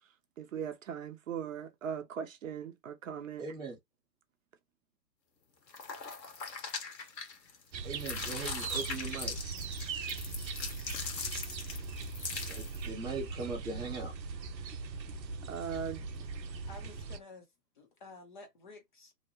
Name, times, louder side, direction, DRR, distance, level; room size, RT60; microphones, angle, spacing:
voice 1, 0.4-3.5 15.5-16.1, right 7 dB, 50° right, 0.6 m, -39 dB
voice 2, 3.4-3.8 7.8-9.3 12.5-14.1, right 4 dB, 10° right, 0.7 m, -40 dB
sound 1, 5.7-7.6 7.9-12.9, left 5 dB, 75° left, 1.2 m, -41 dB
sound 2, 7.7-17.2, right 4 dB, 90° right, 0.6 m, -40 dB
voice 3, 16.7-17.5 17.8-19.1, left 3 dB, 30° left, 0.5 m, -51 dB
2.8 x 2.1 x 2.7 m
hypercardioid pair, 130°, 50 cm